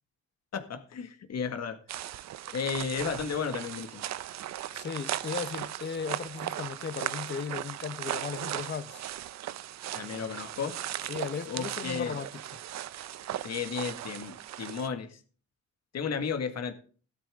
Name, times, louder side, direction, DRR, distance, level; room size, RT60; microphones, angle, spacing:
voice 1, 0.5-1.8 2.5-4.0 9.9-10.8 11.5-12.2 13.4-15.2 15.9-16.7, left 6 dB, 60° left, 2.0 m, -33 dB
sound 1, 1.9-14.9, right 12 dB, 65° right, 0.7 m, -37 dB
voice 2, 4.7-9.1 11.1-12.3, left 6 dB, 35° left, 1.1 m, -36 dB
13.5 x 12.0 x 3.7 m
cardioid pair, 90°, 30 cm